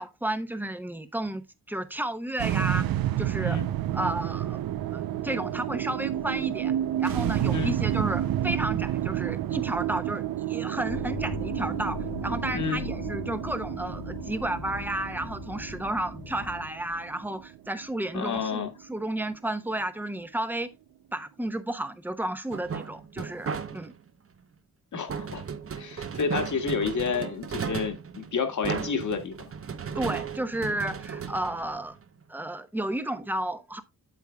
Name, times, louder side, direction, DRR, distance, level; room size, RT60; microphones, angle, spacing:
voice 1, 0.0-2.8 3.2-3.6 3.9-4.6 4.9-6.7 7.0-20.7 21.1-23.9 30.0-32.0 32.3-33.8, right 1 dB, 5° right, 0.9 m, -32 dB
sound 1, 2.4-18.8, right 12 dB, 70° right, 0.6 m, -30 dB
sound 2, 10.9-16.7, left 2 dB, 75° left, 2.9 m, -38 dB
voice 2, 12.5-12.8 18.1-18.7 24.9-25.4 25.8-29.4, left 5 dB, 55° left, 1.8 m, -30 dB
sound 3, 22.5-24.1 25.1-32.2, right 6 dB, 40° right, 0.8 m, -35 dB
8.5 x 8.1 x 2.3 m
cardioid pair, 100°, 36 cm